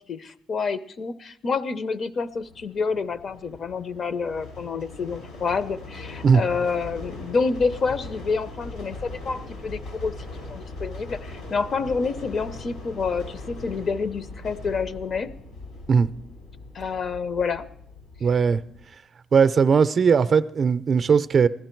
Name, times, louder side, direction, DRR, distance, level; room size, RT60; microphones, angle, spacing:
voice 1, 0.1-15.3 16.7-17.7, left 4 dB, 50° left, 0.7 m, -28 dB
sound 1, 2.3-18.8, left 2 dB, 85° left, 5.9 m, -40 dB
voice 2, 18.2-18.6 19.3-21.5, right 6 dB, 50° right, 0.5 m, -18 dB
16.0 x 12.0 x 4.5 m
cardioid pair, 90°, 0 cm